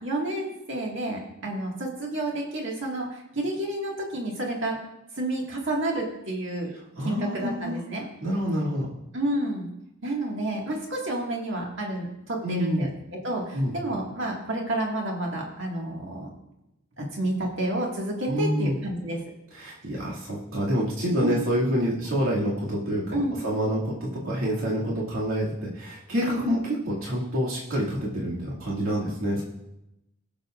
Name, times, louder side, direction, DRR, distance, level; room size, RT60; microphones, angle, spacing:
voice 1, 0.0-4.8 5.1-6.7 7.0-8.0 9.1-9.7 10.0-16.3 17.0-19.2 21.2-21.4 23.1-23.4 26.4-26.6, right 1 dB, 60° right, -1 dB, 1.9 m, -30 dB
voice 2, 7.0-7.8 8.2-8.9 12.4-12.9 13.5-13.7 18.3-18.8 19.5-29.4, equal, 75° right, -6 dB, 2.4 m, -27 dB
19.5 x 6.9 x 2.5 m, 0.89 s
head